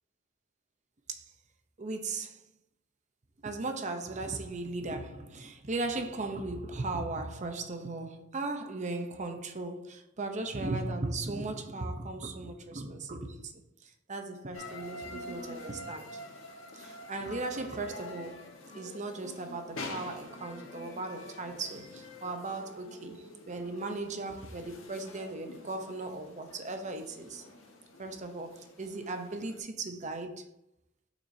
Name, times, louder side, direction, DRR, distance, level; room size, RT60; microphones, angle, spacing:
voice 1, 1.8-2.4 3.4-16.2 16.7-18.5 18.7-27.4 28.0-30.5, right 2 dB, 35° right, 0.7 m, -37 dB
sound 1, 14.5-29.6, left 2 dB, 85° left, 1.3 m, -47 dB
7.1 x 6.1 x 2.7 m
head